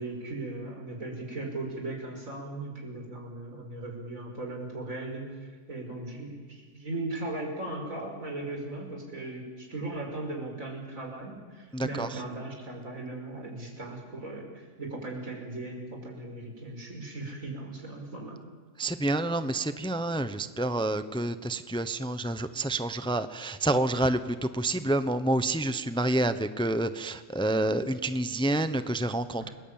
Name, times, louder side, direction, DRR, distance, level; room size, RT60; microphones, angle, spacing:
voice 1, 0.0-18.4 29.5-29.6, right 2 dB, 85° right, 1 dB, 5.9 m, -38 dB
voice 2, 11.7-12.2 18.8-29.5, right 1 dB, 5° left, 11 dB, 0.8 m, -28 dB
29.5 x 21.0 x 8.8 m, 1.4 s
omnidirectional pair, 1.4 m